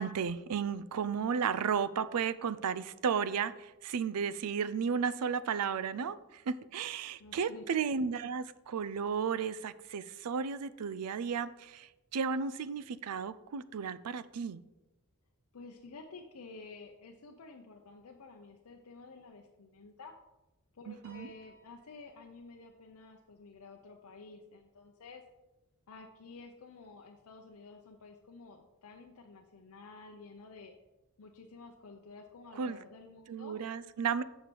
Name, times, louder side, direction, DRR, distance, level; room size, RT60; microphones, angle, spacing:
voice 1, 0.0-14.6 20.9-21.3 32.6-32.8 33.3-34.2, right 6 dB, 85° right, 16 dB, 0.4 m, -34 dB
voice 2, 7.2-7.6 15.5-20.1 20.7-25.2 25.9-30.7 31.2-33.6, left 3 dB, 70° left, 2 dB, 0.6 m, -51 dB
Piano, 21.0-23.5, equal, 50° right, 2.2 m, -62 dB
6.8 x 6.5 x 4.4 m, 0.99 s
head